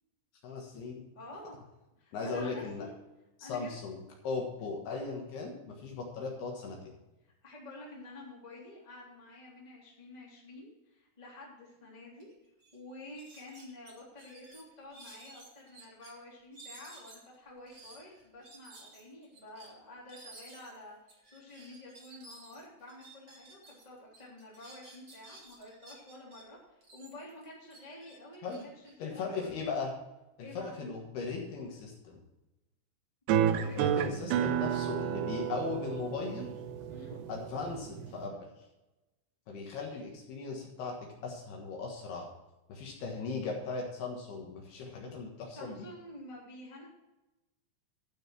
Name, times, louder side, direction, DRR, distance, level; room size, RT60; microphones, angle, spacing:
voice 1, 0.4-1.0 2.1-2.9 3.4-7.0 28.4-28.6 29.0-29.9 30.4-32.2 33.5-36.5 37.3-38.5 39.5-42.3 42.7-45.8, left 4 dB, 65° left, 0 dB, 3.3 m, -38 dB
voice 2, 1.1-1.5 2.0-2.9 3.4-3.7 7.2-12.3 12.7-21.0 21.2-29.6 30.4-30.7 33.4-34.3 36.9-37.2 45.5-46.9, left 1 dB, 10° left, -4 dB, 2.6 m, -50 dB
sound 1, 12.2-12.3 12.6-12.8 13.1-16.1 16.5-23.8 24.1-26.4 26.8-29.7, right 2 dB, 35° right, 2.1 m, -54 dB
sound 2, 33.3-38.3, right 9 dB, 85° right, 2.4 m, -31 dB
12.0 x 6.4 x 6.1 m, 1.0 s
omnidirectional pair, 5.2 m